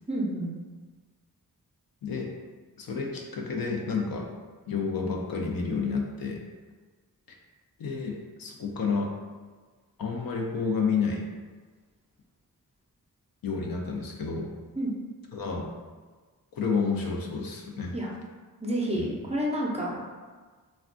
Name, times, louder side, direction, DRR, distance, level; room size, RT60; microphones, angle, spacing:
voice 1, 0.1-0.6 14.8-14.9 17.9-18.1 18.6-20.1, right 1 dB, 15° right, -3 dB, 0.5 m, -29 dB
voice 2, 2.8-4.2 4.7-6.4 7.3-7.4 7.8-9.1 10.0-11.3 13.4-14.5 15.3-15.7 16.5-17.9 19.0-19.1, left 5 dB, 65° left, 0 dB, 0.6 m, -30 dB
3.3 x 2.2 x 2.5 m, 1.4 s
cardioid pair, 70°, 37 cm